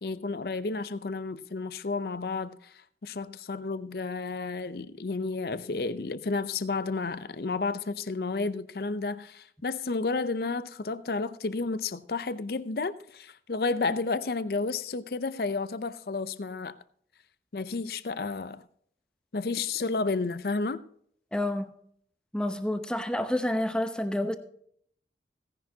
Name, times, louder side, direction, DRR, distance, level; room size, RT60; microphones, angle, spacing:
voice 1, 0.0-16.8 17.5-18.7 19.3-20.8, left 3 dB, 60° left, 0.6 m, -31 dB
voice 2, 21.3-21.7 22.3-24.4, left 1 dB, 5° left, 0.8 m, -29 dB
16.5 x 10.5 x 2.8 m
head